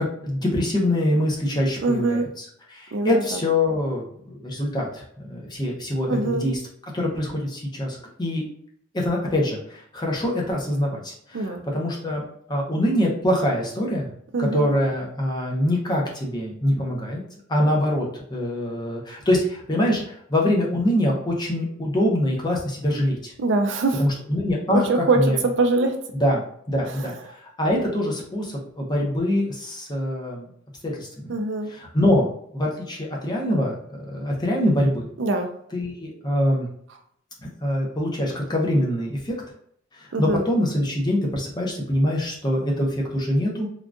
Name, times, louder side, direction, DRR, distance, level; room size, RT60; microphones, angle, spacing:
voice 1, 0.0-6.6 6.9-8.5 8.9-14.1 14.4-17.2 17.5-23.3 24.0-25.4 26.2-30.5 30.8-31.3 31.7-35.1 35.7-36.7 37.6-39.4 39.9-43.7, left 1 dB, 20° left, -2 dB, 0.7 m, -24 dB
voice 2, 1.8-2.3 2.9-3.4 6.1-6.5 11.3-11.6 14.3-14.7 23.4-24.0 24.7-25.9 26.9-27.1 31.3-31.7 35.2-35.5 40.1-40.4, right 3 dB, 65° right, 5 dB, 0.4 m, -23 dB
3.6 x 2.4 x 2.4 m, 0.66 s
head